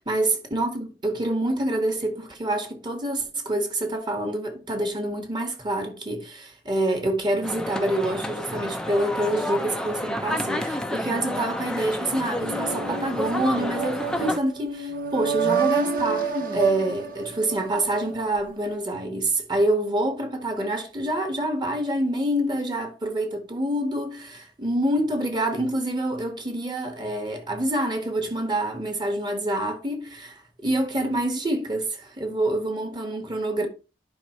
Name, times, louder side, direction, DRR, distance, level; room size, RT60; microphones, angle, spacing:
voice 1, 0.0-33.7, right 1 dB, 25° right, 1.7 m, -27 dB
sound 1, 7.4-14.4, left 1 dB, 5° left, 0.7 m, -30 dB
sound 2, 12.4-18.2, right 6 dB, 50° right, 1.3 m, -28 dB
11.5 x 5.5 x 3.1 m
head